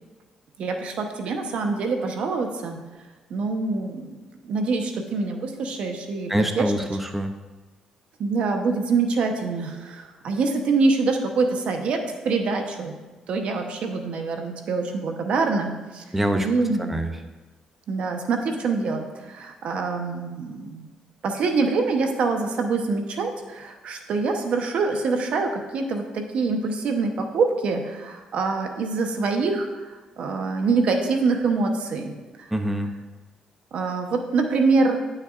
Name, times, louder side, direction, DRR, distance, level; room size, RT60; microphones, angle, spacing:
voice 1, 0.6-2.8 3.3-4.2 4.4-6.7 8.2-12.9 13.3-16.0 16.3-16.9 17.9-20.8 21.2-29.8 30.2-32.1 33.7-35.0, right 4 dB, 65° right, 4 dB, 0.9 m, -25 dB
voice 2, 6.3-7.3 16.1-16.5 16.9-17.1 32.5-32.9, equal, 10° right, 6 dB, 0.5 m, -24 dB
9.7 x 6.5 x 2.5 m, 1.2 s
cardioid pair, 85°, 2 cm